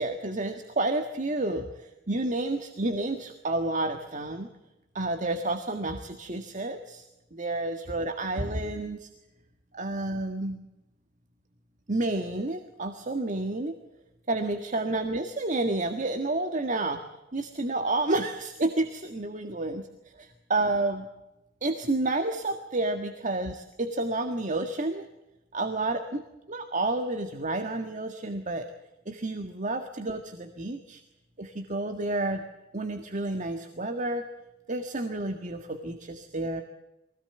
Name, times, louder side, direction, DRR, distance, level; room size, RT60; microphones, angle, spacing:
voice 1, 0.0-4.5 4.9-9.1 9.7-10.7 11.9-13.8 14.3-17.0 17.3-19.8 20.2-21.1 21.6-25.0 25.5-26.2 26.5-28.7 29.0-31.0 31.4-32.4 32.7-34.3 34.7-36.6, right 2 dB, 40° right, 6 dB, 1.7 m, -30 dB
23.5 x 17.5 x 8.0 m, 0.96 s
head